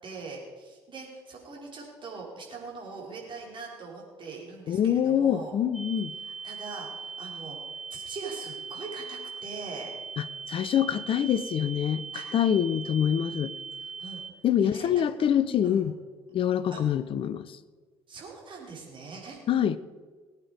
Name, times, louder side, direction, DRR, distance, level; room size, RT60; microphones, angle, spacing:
voice 1, 0.0-5.5 6.2-9.9 12.1-12.2 14.0-14.2 14.6-15.3 15.6-15.8 16.7-16.8 18.1-19.4, right 4 dB, 40° right, -2 dB, 5.0 m, -42 dB
voice 2, 4.7-6.1 10.2-12.0 12.3-13.5 14.4-16.0 16.3-17.6 19.5-19.8, left 9 dB, 45° left, 15 dB, 0.7 m, -25 dB
sound 1, 5.7-14.3, right 5 dB, 5° right, 0.9 m, -40 dB
20.0 x 9.1 x 5.2 m, 1.5 s
figure-of-eight pair, 50°, 13 cm